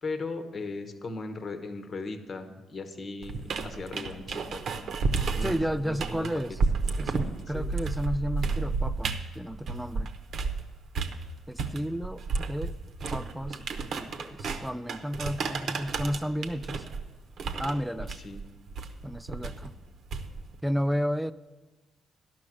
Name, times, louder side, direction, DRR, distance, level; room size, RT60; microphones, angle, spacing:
voice 1, 0.0-4.6 5.3-5.5 5.8-6.3 7.5-7.7 17.9-18.4, left 3 dB, 45° left, 8 dB, 1.1 m, -37 dB
sound 1, 3.2-10.6 10.9-20.6, right 4 dB, 65° right, 0.8 m, -32 dB
voice 2, 5.4-6.6 7.0-10.1 11.5-12.7 13.1-13.6 13.9-16.9 17.6-18.2 19.0-19.7 20.6-21.3, equal, 5° right, 13 dB, 0.3 m, -32 dB
11.5 x 6.1 x 7.7 m, 1.2 s
cardioid pair, 90°, 0 cm